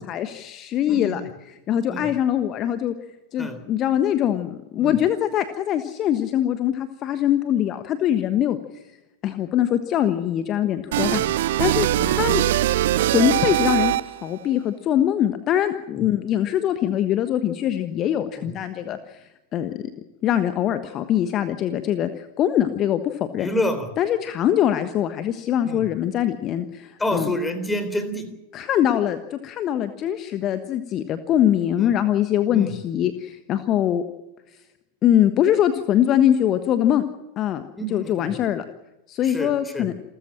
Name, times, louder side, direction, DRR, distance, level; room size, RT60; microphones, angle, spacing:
voice 1, 0.0-2.9 3.3-8.8 9.2-11.2 11.6-12.4 13.0-19.8 20.2-23.5 24.0-27.3 28.5-34.0 35.0-37.0 37.4-37.6 37.9-38.6 39.1-39.9, left 11 dB, 35° left, 10 dB, 1.3 m, -23 dB
sound 1, 10.9-14.3, right 14 dB, 55° right, 0.7 m, -21 dB
voice 2, 23.4-23.9 25.6-25.9 27.0-28.3 31.8-31.9 32.5-32.7 37.8-38.3 39.2-39.9, left 1 dB, 10° left, 10 dB, 3.7 m, -28 dB
28.5 x 14.0 x 7.5 m, 1.0 s
figure-of-eight pair, 90°, 0 cm